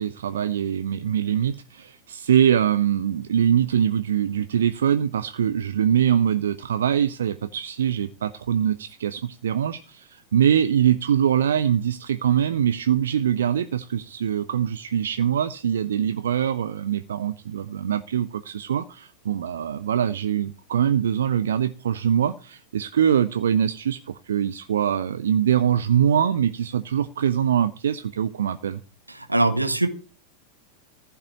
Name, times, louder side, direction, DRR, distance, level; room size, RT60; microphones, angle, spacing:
voice 1, 0.0-28.8, right 9 dB, 65° right, 11 dB, 0.7 m, -23 dB
voice 2, 29.1-29.9, right 2 dB, 85° right, 8 dB, 1.6 m, -22 dB
14.5 x 5.8 x 8.6 m, 0.36 s
figure-of-eight pair, 90°, 0 cm